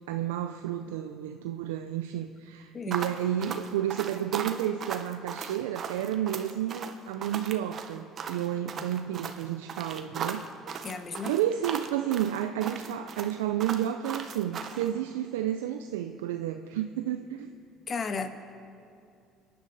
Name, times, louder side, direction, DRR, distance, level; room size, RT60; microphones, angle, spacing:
voice 1, 0.1-10.5 11.2-17.6, right 11 dB, 90° right, 7 dB, 0.5 m, -31 dB
sound 1, 2.9-14.9, right 6 dB, 50° right, 1.2 m, -37 dB
voice 2, 10.8-11.3 17.9-18.3, left 5 dB, 40° left, 7 dB, 1.6 m, -34 dB
29.5 x 10.5 x 4.1 m, 2.5 s
hypercardioid pair, 70°, 0 cm